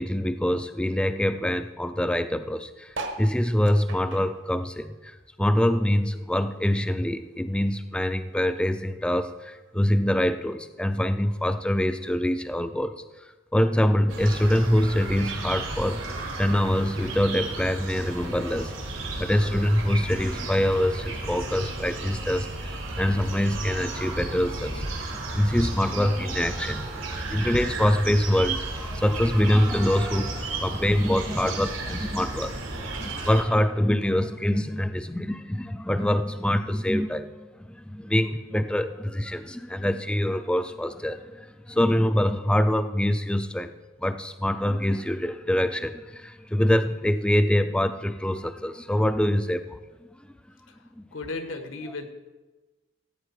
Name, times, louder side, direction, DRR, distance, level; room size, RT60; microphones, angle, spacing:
voice 1, 0.0-13.0 13.5-25.1 25.3-43.7 44.0-49.8 51.0-51.1 51.9-52.0, left 1 dB, 5° left, 11 dB, 0.4 m, -25 dB
sound 1, 2.9-5.7 6.0-7.5 8.0-8.1 8.3-8.4 8.6-9.0 9.7-9.8, right 3 dB, 65° right, 1.3 m, -40 dB
sound 2, 14.1-33.4, right 2 dB, 90° right, 2.6 m, -33 dB
voice 2, 51.1-52.1, left 3 dB, 80° left, 7 dB, 1.4 m, -34 dB
16.0 x 8.7 x 4.7 m, 1.2 s
head